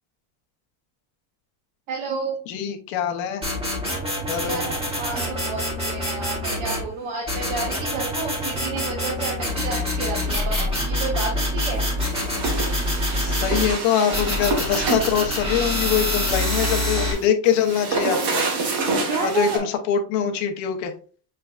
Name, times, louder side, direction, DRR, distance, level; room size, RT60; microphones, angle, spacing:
voice 1, 1.9-2.4 4.4-11.8 19.1-19.6, right 4 dB, 85° right, -4 dB, 1.7 m, -30 dB
voice 2, 2.5-3.4 4.3-4.7 13.2-18.4 19.2-20.9, left 8 dB, 70° left, 5 dB, 0.9 m, -23 dB
sound 1, 3.4-6.9 7.3-13.7 14.1-17.1, left 1 dB, 10° right, 1.6 m, -26 dB
sound 2, 11.7-19.6, right 3 dB, 55° right, 1.3 m, -28 dB
6.6 x 3.3 x 2.4 m, 0.41 s
cardioid pair, 170°, 48 cm